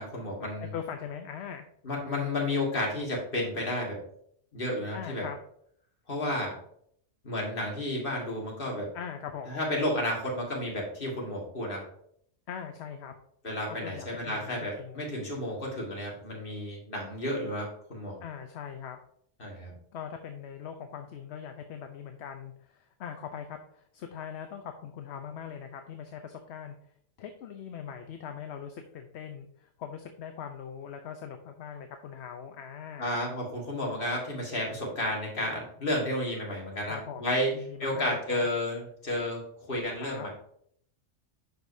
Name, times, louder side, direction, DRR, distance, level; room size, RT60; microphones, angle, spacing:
voice 1, 0.0-0.7 1.8-4.0 4.5-5.2 6.1-6.6 7.2-8.9 9.5-11.8 13.4-18.2 19.4-19.7 33.0-37.5 37.8-39.4 39.7-40.3, left 1 dB, 50° left, -1 dB, 2.1 m, -32 dB
voice 2, 0.6-1.7 4.9-5.4 8.9-9.6 12.5-13.2 13.7-15.0 18.2-19.0 19.9-26.7 27.2-33.2 36.9-38.5 40.0-40.3, left 8 dB, 70° left, 5 dB, 0.9 m, -41 dB
11.0 x 5.1 x 2.7 m, 0.67 s
omnidirectional pair, 1.2 m